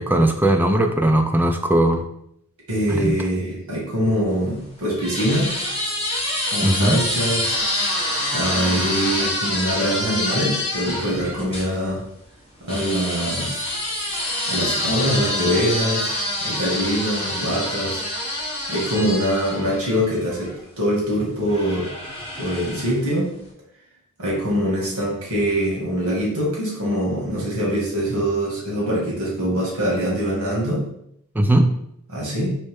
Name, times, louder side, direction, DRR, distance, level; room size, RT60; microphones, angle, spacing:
voice 1, 0.0-2.1 2.9-3.1 6.6-7.0 31.3-31.7, right 1 dB, 10° right, 5 dB, 0.3 m, -18 dB
voice 2, 2.7-5.6 6.5-7.5 8.3-12.0 12.6-13.7 14.5-18.0 18.7-21.9 22.4-23.3 24.2-30.8 32.1-32.5, equal, 75° right, -4 dB, 1.8 m, -23 dB
sound 1, 4.3-11.7 12.7-20.6 21.5-23.1, left 1 dB, 25° left, 1.3 m, -26 dB
4.2 x 3.2 x 3.5 m, 0.75 s
head